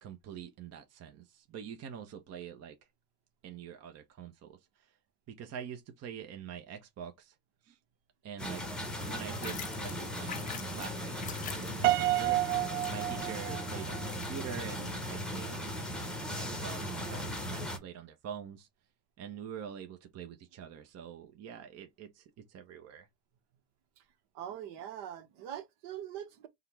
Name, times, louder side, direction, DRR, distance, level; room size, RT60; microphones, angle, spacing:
voice 1, 0.0-2.8 3.4-5.0 5.3-7.4 7.6-7.8 8.2-8.7 9.0-12.4 12.9-18.7 19.2-23.1, right 8 dB, 35° right, 0.7 m, -45 dB
sound 1, 8.4-17.8, equal, ahead, 0.9 m, -38 dB
sound 2, 9.0-15.1, left 8 dB, 20° left, 0.3 m, -47 dB
Piano, 11.8-14.1, right 17 dB, 85° right, 0.5 m, -30 dB
voice 2, 24.3-26.5, right 10 dB, 60° right, 1.1 m, -42 dB
3.7 x 2.3 x 4.5 m
supercardioid pair, 115°, 46 cm